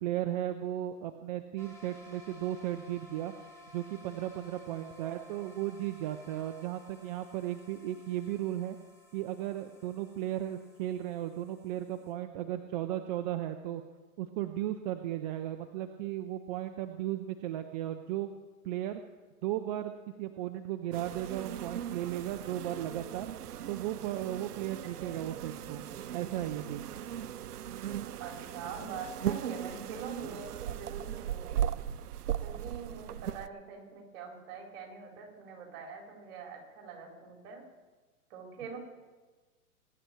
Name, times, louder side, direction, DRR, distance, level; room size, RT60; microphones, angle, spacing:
voice 1, 0.0-3.3 3.7-8.8 9.1-13.8 14.2-18.3 18.6-19.0 19.4-19.9 20.2-23.3 23.7-25.8 26.1-26.9, right 12 dB, 30° right, 8 dB, 0.6 m, -35 dB
sound 1, 1.6-12.1, left 1 dB, 5° left, 2.7 m, -56 dB
voice 2, 4.5-5.2 25.0-25.2 28.2-31.6 32.4-37.6 38.3-38.8, right 5 dB, 45° right, 0 dB, 4.4 m, -44 dB
sound 2, 20.9-33.5, right 10 dB, 90° right, 0.7 m, -38 dB
21.5 x 10.5 x 4.5 m, 1.3 s
hypercardioid pair, 130°, 45 cm